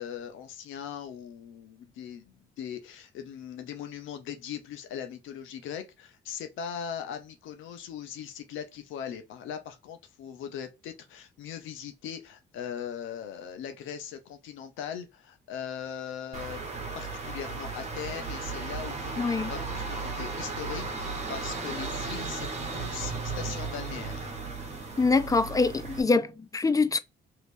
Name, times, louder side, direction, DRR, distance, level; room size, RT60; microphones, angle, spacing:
voice 1, 0.0-16.6 16.9-24.3, left 8 dB, 85° left, 0.8 m, -40 dB
sound 1, 16.3-26.0, right 4 dB, 35° right, 1.1 m, -35 dB
voice 2, 19.2-19.5 25.0-27.0, left 4 dB, 15° left, 0.4 m, -24 dB
3.1 x 2.9 x 3.0 m
cardioid pair, 90°, 20 cm